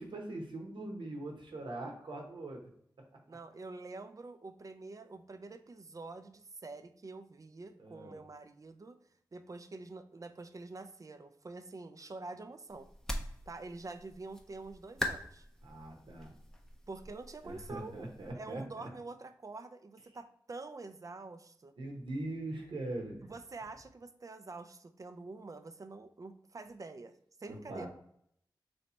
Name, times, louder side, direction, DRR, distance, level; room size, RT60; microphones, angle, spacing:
voice 1, 0.0-2.6 7.8-8.2 15.6-16.3 17.4-18.9 21.8-23.2 27.5-27.9, right 2 dB, 80° right, 1 dB, 0.9 m, -41 dB
voice 2, 3.3-9.0 9.3-12.9 13.5-15.5 16.9-18.1 18.3-21.7 23.2-27.1 27.4-27.9, right 3 dB, 45° right, 9 dB, 0.4 m, -46 dB
sound 1, 12.7-18.3, equal, 5° left, 0.6 m, -43 dB
3.2 x 2.8 x 4.2 m, 0.69 s
cardioid pair, 45°, 8 cm